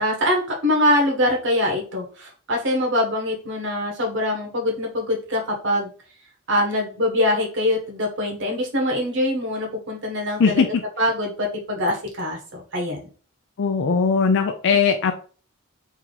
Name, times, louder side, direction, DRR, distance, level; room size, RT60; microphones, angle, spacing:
voice 1, 0.0-5.9 6.5-10.6 11.0-12.4 12.7-13.0, left 1 dB, 60° right, 1 dB, 1.3 m, -23 dB
voice 2, 10.4-10.8 13.6-15.1, left 5 dB, 60° left, 5 dB, 0.4 m, -19 dB
3.5 x 2.8 x 3.9 m, 0.39 s
head